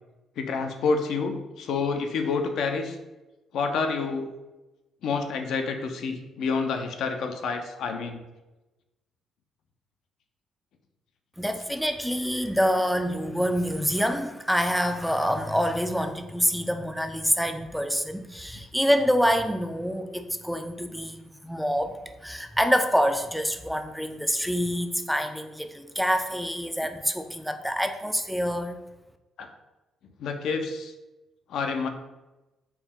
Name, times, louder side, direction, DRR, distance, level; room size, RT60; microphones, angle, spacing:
voice 1, 0.4-3.0 3.5-4.3 5.0-8.2 29.4-29.5 30.2-30.9 31.5-31.9, left 4 dB, 75° left, 5 dB, 0.4 m, -28 dB
voice 2, 11.4-21.2 21.4-28.8, equal, ahead, 7 dB, 0.3 m, -26 dB
4.5 x 2.1 x 3.5 m, 1.1 s
cardioid pair, 90°, 0 cm